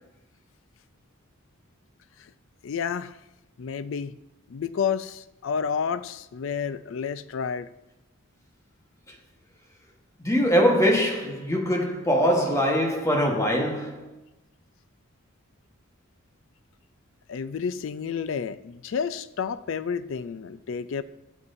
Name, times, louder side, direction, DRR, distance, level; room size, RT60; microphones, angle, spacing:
voice 1, 2.6-3.1 3.6-4.2 4.5-7.7 17.3-21.0, left 6 dB, 60° left, 0.4 m, -30 dB
voice 2, 10.2-14.1, equal, 15° left, 1.2 m, -22 dB
13.5 x 7.3 x 2.6 m
head